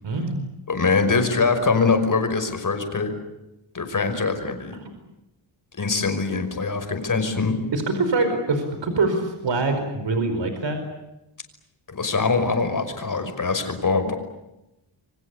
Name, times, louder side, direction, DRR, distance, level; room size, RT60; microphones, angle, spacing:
voice 1, 0.0-0.4 7.7-10.8, right 3 dB, 65° right, 8 dB, 4.8 m, -24 dB
voice 2, 0.7-3.1 3.7-4.8 5.8-7.5 11.9-14.1, left 4 dB, 40° left, 7 dB, 5.7 m, -23 dB
28.0 x 24.5 x 8.4 m, 0.93 s
wide cardioid pair, 110°, 48 cm